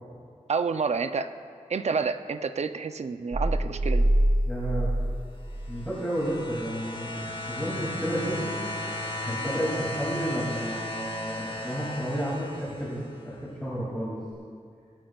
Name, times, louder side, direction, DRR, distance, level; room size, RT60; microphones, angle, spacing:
voice 1, 0.5-1.3 1.7-4.1, right 5 dB, 60° right, 10 dB, 0.5 m, -29 dB
sound 1, 3.3-6.0, right 1 dB, 40° right, 0.9 m, -25 dB
voice 2, 4.5-4.9 5.7-7.2 7.5-8.5 9.2-14.2, equal, 10° left, -8 dB, 2.6 m, -31 dB
sound 2, 5.5-13.3 14.3-14.4, left 1 dB, 40° left, 1.3 m, -35 dB
22.0 x 8.9 x 2.4 m, 2.2 s
wide cardioid pair, 85°, 13 cm